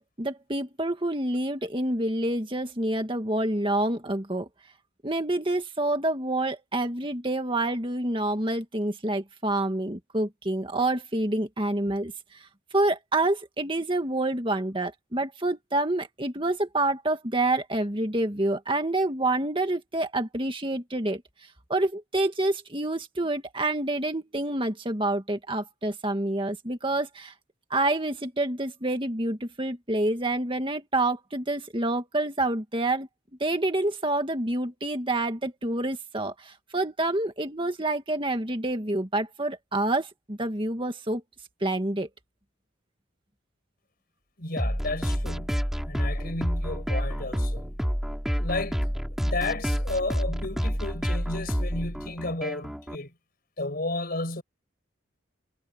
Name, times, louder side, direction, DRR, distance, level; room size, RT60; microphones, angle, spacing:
voice 1, 0.0-4.5 5.0-12.5 12.7-21.2 21.7-27.3 27.7-33.1 33.4-41.2 41.6-42.1, right 2 dB, 25° right, 2.1 m, -27 dB
voice 2, 44.4-47.7 48.4-53.1 53.6-54.4, left 2 dB, 50° left, 5.2 m, -33 dB
sound 1, 44.6-53.0, equal, ahead, 3.3 m, -29 dB
head